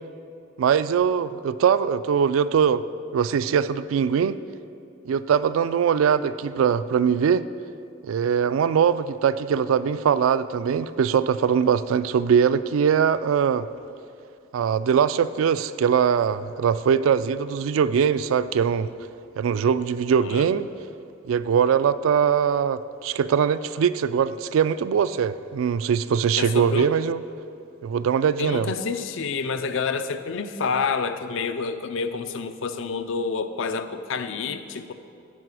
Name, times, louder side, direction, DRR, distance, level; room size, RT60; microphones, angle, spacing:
voice 1, 0.6-2.8 3.1-4.4 5.1-7.5 8.0-13.7 14.5-18.9 19.4-20.7 21.3-27.2 27.8-28.7, right 7 dB, 80° right, 15 dB, 0.3 m, -22 dB
voice 2, 26.4-26.9 28.4-34.9, left 5 dB, 70° left, 10 dB, 0.5 m, -28 dB
13.5 x 5.0 x 4.8 m, 2.6 s
head